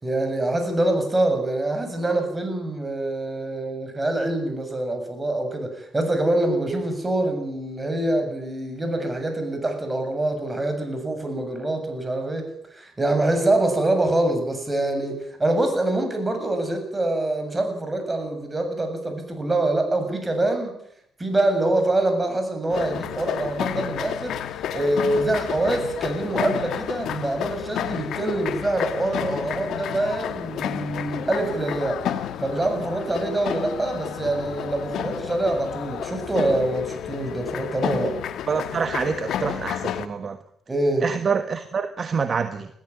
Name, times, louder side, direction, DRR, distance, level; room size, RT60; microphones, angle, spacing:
voice 1, 0.0-20.8 21.2-24.4 24.7-32.1 32.4-38.2 40.7-41.1, right 2 dB, 20° right, 6 dB, 7.4 m, -25 dB
sound 1, 22.7-40.1, left 10 dB, 75° left, 1.5 m, -31 dB
voice 2, 38.5-40.4 41.0-42.7, right 5 dB, 45° right, 9 dB, 1.6 m, -26 dB
21.0 x 14.5 x 9.9 m, 0.72 s
cardioid pair, 90°, 0 cm